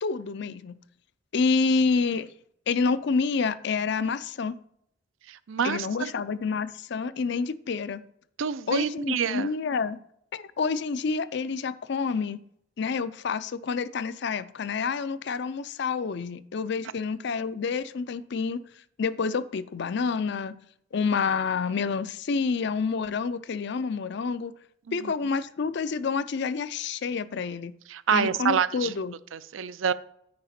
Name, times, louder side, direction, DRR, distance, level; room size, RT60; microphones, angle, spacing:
voice 1, 0.0-0.7 1.3-2.3 2.7-4.5 5.6-8.0 8.7-10.0 10.3-12.4 12.8-18.6 19.0-20.5 20.9-24.5 24.9-27.7 28.1-29.1, left 5 dB, 60° left, 0.4 m, -28 dB
voice 2, 5.3-6.1 8.4-9.5 24.9-25.1 27.9-28.9 29.3-29.9, right 7 dB, 80° right, 0.5 m, -27 dB
9.5 x 5.0 x 4.3 m
head